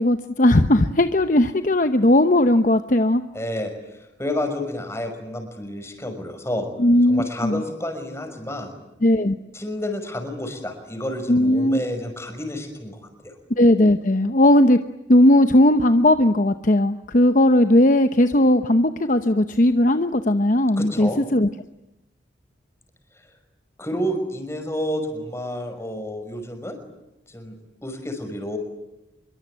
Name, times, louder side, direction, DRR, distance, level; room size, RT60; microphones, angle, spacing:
voice 1, 0.0-3.2 6.8-7.6 9.0-9.4 11.3-11.8 13.6-14.8 15.1-21.5, left 1 dB, 45° left, 9 dB, 0.9 m, -17 dB
voice 2, 3.3-6.7 7.1-8.7 9.5-13.3 20.8-21.2 23.1-23.3 23.8-26.8 27.3-27.5 27.8-28.6, left 1 dB, 15° left, 5 dB, 5.7 m, -30 dB
25.5 x 24.0 x 9.2 m, 0.91 s
head